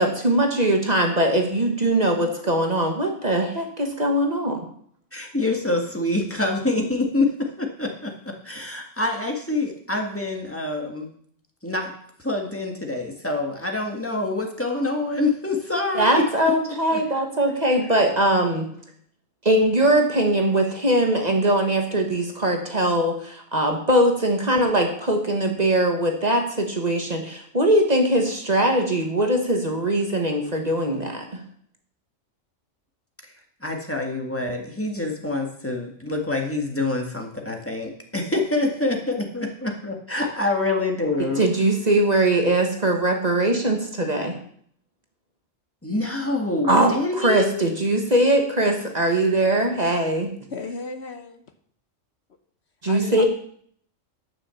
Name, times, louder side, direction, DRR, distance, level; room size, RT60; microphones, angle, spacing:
voice 1, 0.0-4.6 15.9-18.7 19.4-31.2 41.2-44.3 46.6-50.3 52.8-53.2, right 1 dB, 35° right, 3 dB, 1.5 m, -21 dB
voice 2, 5.1-11.1 11.6-11.9 12.2-16.2 33.6-41.5 45.8-47.7, left 2 dB, 10° left, 1 dB, 1.8 m, -26 dB
voice 3, 50.5-51.4 52.9-53.2, left 3 dB, 60° left, 7 dB, 1.1 m, -34 dB
11.0 x 6.4 x 7.1 m, 0.63 s
omnidirectional pair, 1.3 m